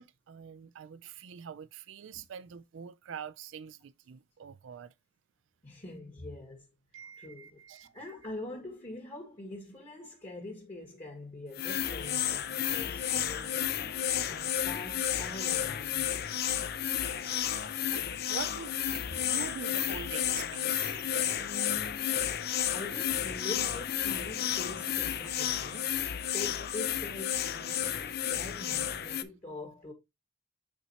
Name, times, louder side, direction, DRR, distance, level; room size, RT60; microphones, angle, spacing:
voice 1, 0.0-4.9 6.9-8.1 16.9-21.1, right 7 dB, 85° right, 0.4 m, -45 dB
voice 2, 5.6-6.7 7.2-7.6 7.9-13.6 14.3-16.1 17.6-17.8 19.1-19.2 21.4-22.4 22.7-26.0 26.3-29.9, left 2 dB, 35° left, 2.0 m, -44 dB
sound 1, 11.5-29.2, left 9 dB, 55° left, 0.5 m, -32 dB
8.4 x 4.3 x 2.8 m
head